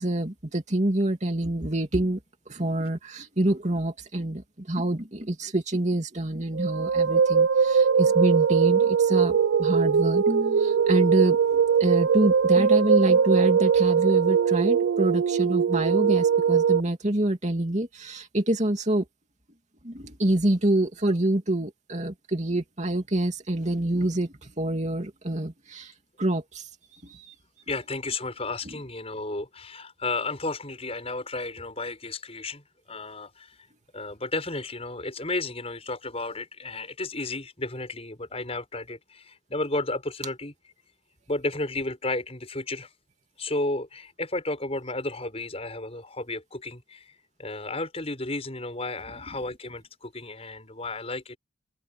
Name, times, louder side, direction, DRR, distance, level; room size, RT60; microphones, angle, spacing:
voice 1, 0.0-2.2 2.5-19.0 19.8-25.9 26.2-27.3 28.6-28.8, right 1 dB, 40° right, 2.6 m, -26 dB
sound 1, 6.6-16.8, right 6 dB, 80° right, 0.4 m, -21 dB
voice 2, 27.7-33.5 33.9-40.5 41.3-42.9 43.4-51.4, left 2 dB, 30° left, 6.6 m, -33 dB
open air
head